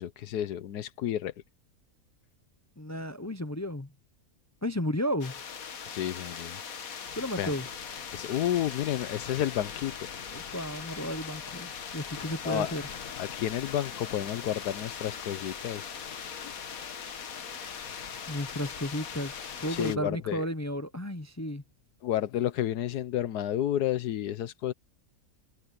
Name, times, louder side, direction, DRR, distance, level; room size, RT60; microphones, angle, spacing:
voice 1, 0.0-1.3 5.9-6.6 7.4-7.5 8.1-9.9 12.4-12.7 13.1-15.9 16.4-16.6 19.7-20.4 22.0-24.7, left 11 dB, 90° left, 1.3 m, -31 dB
voice 2, 2.8-3.9 4.6-5.3 7.1-7.7 10.3-12.8 18.3-21.6, equal, 25° left, 0.3 m, -33 dB
sound 1, 5.2-20.0, left 7 dB, 65° left, 1.7 m, -40 dB
omnidirectional pair, 1.6 m